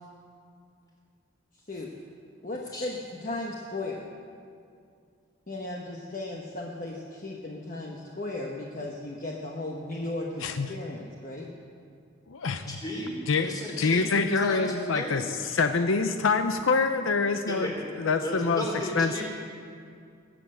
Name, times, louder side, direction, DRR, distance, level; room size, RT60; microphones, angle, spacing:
voice 1, 2.4-4.0 5.5-11.5, left 2 dB, 40° left, -1 dB, 1.1 m, -36 dB
voice 2, 10.4-10.7 12.3-12.7 13.3-19.2, left 4 dB, 75° left, 8 dB, 0.6 m, -26 dB
voice 3, 12.7-14.6 14.9-15.2 17.5-17.7 18.2-19.2, left 1 dB, 20° left, -2 dB, 3.1 m, -34 dB
20.5 x 7.8 x 7.9 m, 2.4 s
head